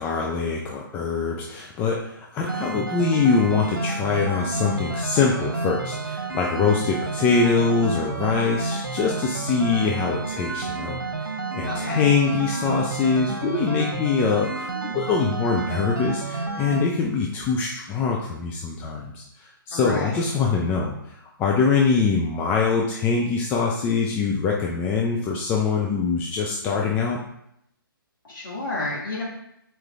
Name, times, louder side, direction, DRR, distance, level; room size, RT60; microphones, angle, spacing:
voice 1, 0.0-27.2, left 5 dB, 15° left, -1 dB, 0.4 m, -24 dB
sound 1, 2.5-16.8, right 3 dB, 70° right, 1.2 m, -30 dB
voice 2, 11.7-12.1 19.7-20.3 28.2-29.2, left 2 dB, 60° left, -6 dB, 2.0 m, -30 dB
6.4 x 4.5 x 3.6 m, 0.78 s
figure-of-eight pair, 130°, 12 cm